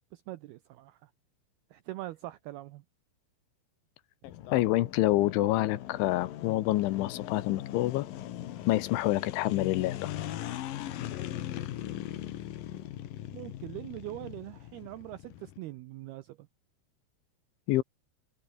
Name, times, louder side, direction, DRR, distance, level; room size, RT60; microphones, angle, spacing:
voice 1, 0.1-1.1 1.7-2.8 13.3-16.5, right 16 dB, 85° right, 2.3 m, -42 dB
sound 1, 4.2-15.6, left 12 dB, 65° left, 2.4 m, -40 dB
voice 2, 4.5-8.1 8.7-10.1 17.7-17.8, left 16 dB, 80° left, 3.4 m, -27 dB
omnidirectional pair, 5.5 m